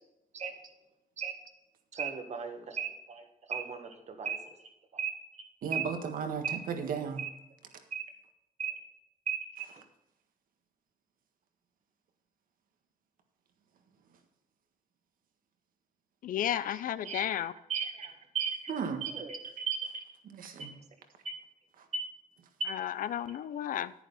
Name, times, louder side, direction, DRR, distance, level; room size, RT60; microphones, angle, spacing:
voice 1, 1.9-4.4 4.9-5.1 5.7-5.8 6.4-6.6 7.2-7.3 7.9-8.0 8.6-8.7 9.3-9.4 17.0-17.3 17.7-18.7 19.0-19.4 19.7-20.0 20.6-20.7 21.2-21.3 21.9-22.0 22.6-22.7, right 6 dB, 55° right, 5 dB, 1.7 m, -35 dB
voice 2, 5.6-7.2 9.6-9.8 16.7-16.8 18.7-19.1 19.4-19.7 20.2-20.7 21.8-21.9 23.1-23.2, right 6 dB, 80° right, 6 dB, 1.6 m, -36 dB
voice 3, 16.2-17.5 22.7-23.9, left 11 dB, 75° left, 16 dB, 0.6 m, -33 dB
10.5 x 9.9 x 4.1 m, 0.91 s
cardioid pair, 130°, 14 cm